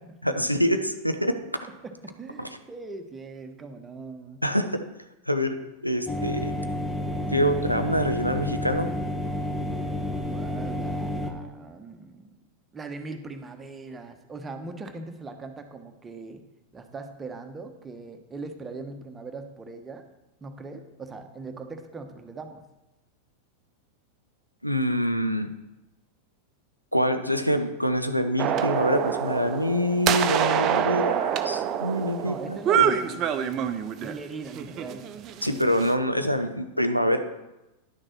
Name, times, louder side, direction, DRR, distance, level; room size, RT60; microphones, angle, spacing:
voice 1, 0.2-1.4 2.4-2.5 4.4-4.8 5.3-6.5 7.3-8.9 24.6-25.5 26.9-32.8 35.4-37.2, equal, 90° left, 8 dB, 0.7 m, -25 dB
voice 2, 1.8-4.4 10.2-12.3 12.7-16.4 16.7-20.1 20.4-22.6 32.2-33.7 34.0-35.0, right 3 dB, 15° right, 6 dB, 1.0 m, -40 dB
sound 1, 6.1-11.3, left 1 dB, 5° left, 1.1 m, -30 dB
sound 2, 28.4-34.2 34.6-35.9, right 9 dB, 35° right, 0.6 m, -26 dB
10.5 x 6.5 x 4.4 m, 0.97 s
figure-of-eight pair, 90°, 0 cm